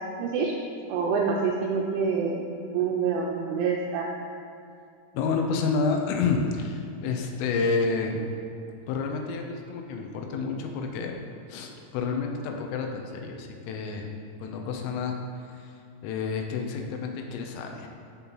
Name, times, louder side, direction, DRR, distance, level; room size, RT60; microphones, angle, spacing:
voice 1, 0.2-0.5 0.9-4.1, right 5 dB, 80° right, -2 dB, 2.9 m, -27 dB
voice 2, 5.1-8.2 8.9-11.2 11.5-14.1 14.4-15.7 16.0-17.9, left 4 dB, 85° left, 2 dB, 3.3 m, -29 dB
14.5 x 5.4 x 3.0 m, 2.5 s
omnidirectional pair, 5.8 m